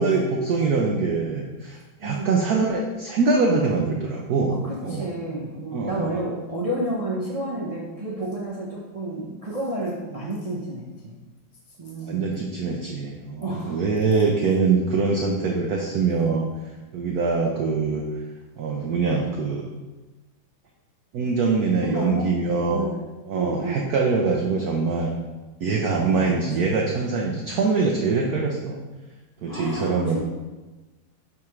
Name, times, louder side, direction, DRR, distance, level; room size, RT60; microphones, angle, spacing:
voice 1, 0.0-4.6 4.8-5.1 5.7-6.2 12.0-16.5 16.9-18.0 18.6-19.6 21.1-22.8 23.3-25.1 25.6-28.8 29.4-30.2, right 4 dB, 65° right, -1 dB, 0.9 m, -23 dB
voice 2, 2.0-2.4 4.5-11.2 11.8-12.4 13.4-13.8 21.8-22.3 22.7-23.0 23.3-23.8 26.0-26.8 29.5-30.2, right 1 dB, 50° right, -5 dB, 0.4 m, -31 dB
10.5 x 3.6 x 3.1 m, 1.2 s
omnidirectional pair, 2.3 m